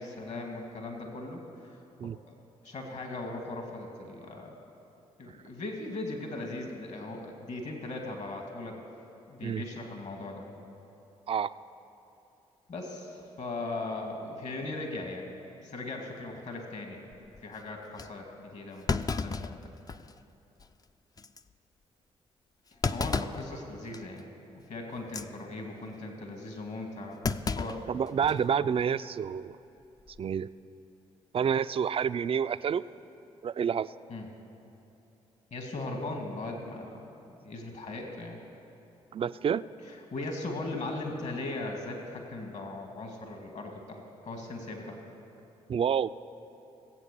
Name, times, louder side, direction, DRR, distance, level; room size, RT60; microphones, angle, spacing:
voice 1, 0.0-2.3 2.6-4.5 5.2-8.8 9.3-10.6 12.7-15.2 15.6-17.0 17.4-19.7 22.9-24.3 24.5-27.2 27.5-27.8 28.6-28.7 34.1-34.3 35.5-36.9 37.2-38.4 39.9-45.0, left 2 dB, 55° left, 2 dB, 2.2 m, -39 dB
Thump thud, 17.3-17.4 18.0-18.1 18.9-20.2 20.6-20.7 21.2-21.4 22.8-23.5 23.9-24.2 25.0-25.3 27.2-28.4 28.8-28.9 30.0-30.3, left 4 dB, 25° left, 0.5 m, -33 dB
voice 2, 27.9-29.6 30.2-30.5 31.3-32.8 33.4-33.9 39.1-39.6 45.7-46.1, right 7 dB, 40° right, 14 dB, 0.4 m, -28 dB
16.5 x 8.2 x 6.8 m, 2.8 s
hypercardioid pair, 50°, 14 cm